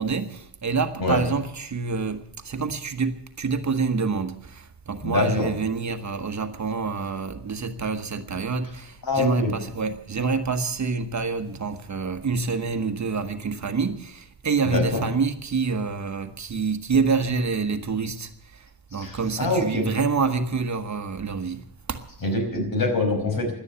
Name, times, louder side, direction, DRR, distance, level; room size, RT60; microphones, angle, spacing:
voice 1, 0.0-22.0, right 4 dB, 40° right, 1.3 m, -27 dB
voice 2, 5.0-5.5 9.0-9.5 14.6-15.1 18.9-19.9 22.2-23.5, left 2 dB, 55° left, 5.1 m, -25 dB
17.5 x 11.5 x 6.9 m
wide cardioid pair, 170°, 43 cm